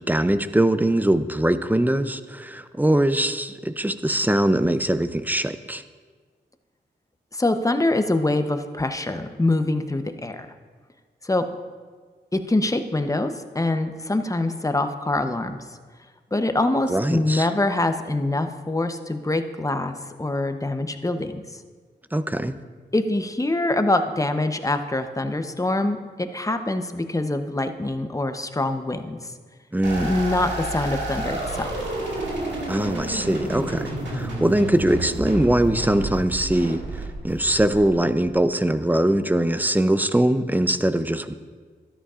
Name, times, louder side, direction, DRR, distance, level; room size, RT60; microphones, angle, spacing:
voice 1, 0.0-5.8 16.9-17.5 22.1-22.6 29.7-30.1 32.7-36.8 37.2-41.3, right 1 dB, 10° right, 11 dB, 0.6 m, -22 dB
voice 2, 7.3-10.5 11.2-11.4 12.3-15.6 16.3-21.6 22.9-29.2 30.0-31.7, left 2 dB, 20° left, 8 dB, 0.8 m, -24 dB
sound 1, 29.8-38.3, right 1 dB, 90° right, 1.9 m, -30 dB
13.0 x 11.5 x 2.5 m, 1.5 s
cardioid pair, 45°, 18 cm